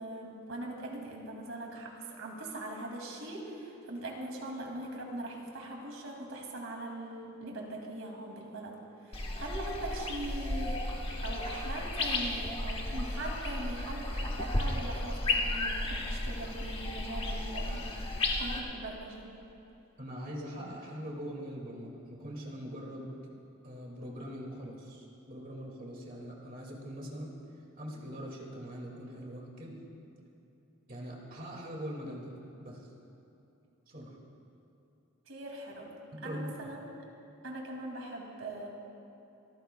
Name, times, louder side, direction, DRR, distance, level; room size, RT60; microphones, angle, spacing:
voice 1, 0.0-8.8 9.0-10.8 11.2-19.3 35.3-35.9 36.2-36.9 37.4-38.7, right 1 dB, 70° right, 0 dB, 2.4 m, -41 dB
sound 1, 9.1-18.6, left 2 dB, 25° left, 1.2 m, -34 dB
voice 2, 20.0-23.2 23.6-27.3 27.8-29.8 30.9-32.3 32.6-32.9 33.9-34.2 36.1-36.5, equal, 45° right, -2 dB, 2.2 m, -42 dB
28.0 x 14.0 x 2.3 m, 2.9 s
head